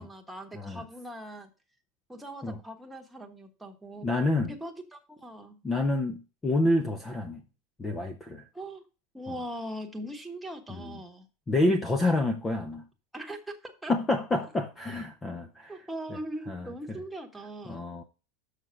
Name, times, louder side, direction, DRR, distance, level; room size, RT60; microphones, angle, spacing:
voice 1, 0.0-1.5 2.1-4.1 4.5-5.6 8.5-8.8 9.1-11.3 12.1-12.2 13.1-13.9 15.7-17.9, right 1 dB, 5° right, 1.2 m, -40 dB
voice 2, 4.0-4.5 5.6-7.4 7.8-8.5 10.7-11.0 11.5-12.8 13.9-15.7 16.5-17.0 17.7-18.0, left 2 dB, 15° left, 0.7 m, -28 dB
6.6 x 6.2 x 5.6 m
supercardioid pair, 150°, 0 cm